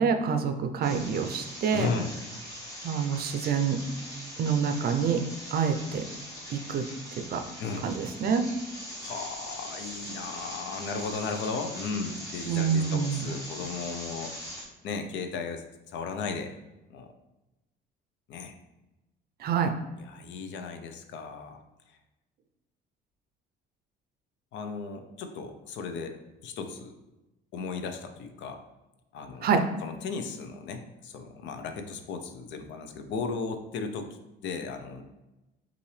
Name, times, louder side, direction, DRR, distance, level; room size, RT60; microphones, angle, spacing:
voice 1, 0.0-1.9 2.8-3.8 4.4-5.2 5.5-6.0 6.5-6.8 7.3-7.4 7.8-8.4 12.5-13.3 19.4-19.7 29.4-29.6, right 6 dB, 55° right, 7 dB, 0.5 m, -26 dB
sound 1, 0.8-14.6, equal, 15° left, 1.4 m, -41 dB
voice 2, 1.7-2.1 7.6-7.9 9.0-14.3 14.8-16.5 16.9-17.1 18.3-18.5 20.0-21.6 24.5-26.2 26.4-26.9 27.5-28.6 29.1-29.5 29.8-35.0, left 4 dB, 70° left, 6 dB, 0.6 m, -35 dB
5.4 x 2.6 x 3.2 m, 1.0 s
cardioid pair, 110°, 19 cm